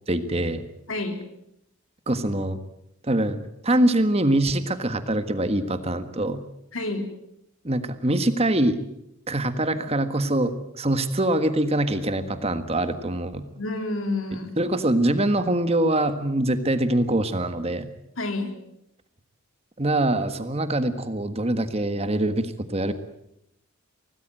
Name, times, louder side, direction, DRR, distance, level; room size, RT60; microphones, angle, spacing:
voice 1, 0.1-0.6 2.1-2.6 3.0-3.4 3.6-6.4 7.6-8.8 9.3-13.4 14.6-17.9 19.8-22.9, right 1 dB, 30° right, 10 dB, 1.6 m, -24 dB
voice 2, 0.9-1.2 6.7-7.1 13.6-14.5 18.2-18.5, left 2 dB, 70° left, 6 dB, 3.9 m, -29 dB
25.0 x 18.5 x 9.1 m, 0.80 s
head